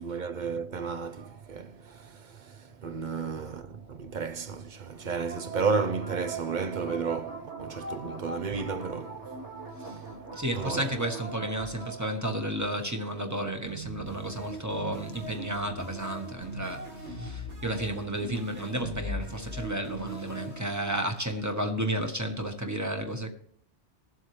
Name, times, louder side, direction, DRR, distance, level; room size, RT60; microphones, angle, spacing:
voice 1, 0.0-9.4 9.8-10.9, right 5 dB, 50° right, 0.7 m, -33 dB
sound 1, 4.9-13.1 13.6-21.0, right 1 dB, 70° right, 2.4 m, -40 dB
voice 2, 10.3-23.3, right 1 dB, 15° right, 1.1 m, -32 dB
19.5 x 7.5 x 3.2 m
omnidirectional pair, 1.2 m